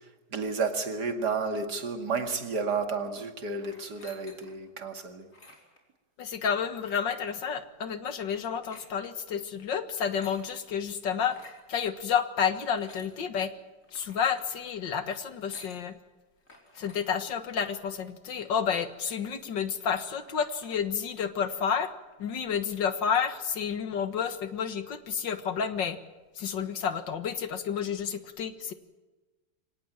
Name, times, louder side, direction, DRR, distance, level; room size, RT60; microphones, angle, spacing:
voice 1, 0.3-5.3, right 4 dB, 65° right, 6 dB, 2.8 m, -31 dB
sound 1, 3.6-4.6 5.2-5.8 6.8-7.3 8.5-8.9 9.8-10.4 11.2-11.6 12.4-13.1 13.8-14.5 15.3-15.8 16.5-17.0 17.5-17.8 18.4-18.5 18.7-19.6 19.9-20.0 20.2-20.8, left 2 dB, 45° left, 5.0 m, -53 dB
voice 2, 6.2-11.4 11.7-13.5 13.9-16.0 16.8-21.9 22.2-26.0 26.4-28.7, left 7 dB, 90° left, 10 dB, 2.3 m, -30 dB
24.0 x 18.5 x 8.9 m, 1.2 s
omnidirectional pair, 1.9 m